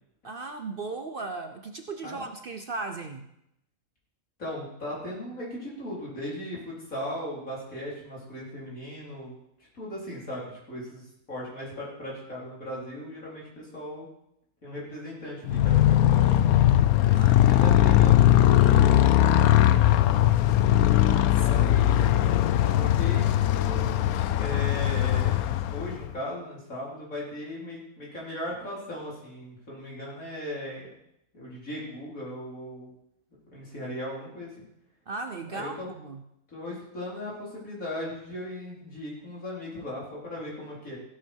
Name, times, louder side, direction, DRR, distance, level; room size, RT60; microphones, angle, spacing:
voice 1, 0.2-3.3 17.1-17.7 20.9-21.6 35.1-36.2, right 3 dB, 45° right, 6 dB, 0.9 m, -37 dB
voice 2, 4.4-9.3 9.7-14.1 14.6-16.4 17.0-20.2 21.4-22.2 22.6-25.4 25.7-30.8 31.3-32.9 33.5-34.7 35.5-35.9 36.5-41.0, left 1 dB, 70° left, -5 dB, 4.7 m, -38 dB
Motorcycle, 15.4-26.1, left 12 dB, 85° left, 1.1 m, -20 dB
15.0 x 8.8 x 4.6 m, 0.79 s
omnidirectional pair, 1.5 m